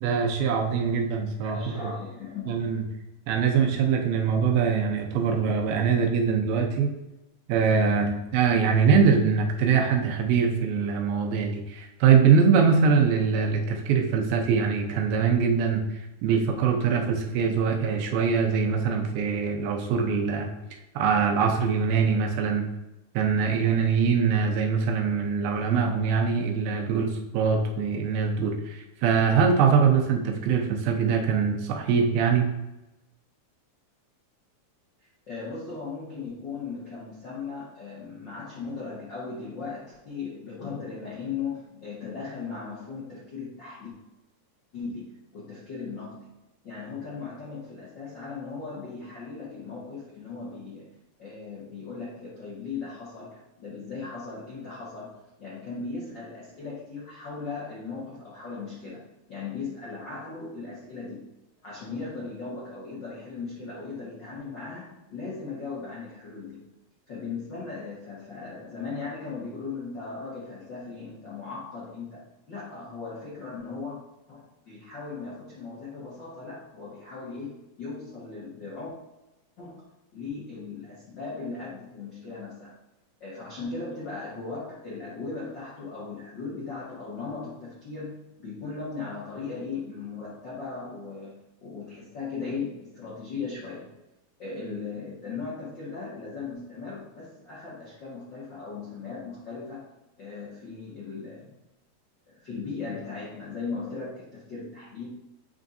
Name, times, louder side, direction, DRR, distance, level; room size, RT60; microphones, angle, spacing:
voice 1, 0.0-1.8 2.5-2.8 3.3-6.9 7.5-20.5 21.0-22.7 23.1-32.5, right 6 dB, 80° right, 2 dB, 2.6 m, -23 dB
voice 2, 1.4-2.4 35.3-43.9 44.7-46.3 46.6-50.9 51.2-61.3 61.6-66.6 67.1-74.0 74.3-78.9 79.6-79.8 80.1-82.7 83.2-93.9 94.4-99.9 100.2-101.6 102.3-105.1, left 4 dB, 65° left, -8 dB, 1.1 m, -38 dB
8.3 x 4.5 x 2.6 m, 0.96 s
omnidirectional pair, 4.2 m